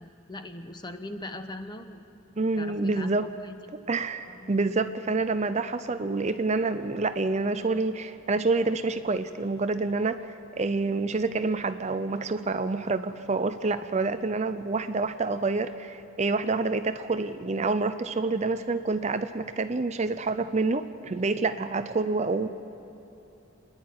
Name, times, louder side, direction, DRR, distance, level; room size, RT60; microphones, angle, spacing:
voice 1, 0.0-2.0 2.6-3.5 4.3-4.5, left 2 dB, 20° left, 8 dB, 0.9 m, -40 dB
voice 2, 2.4-3.3 3.9-22.5, right 3 dB, 30° right, 11 dB, 0.5 m, -27 dB
29.0 x 10.5 x 9.4 m, 2.9 s
head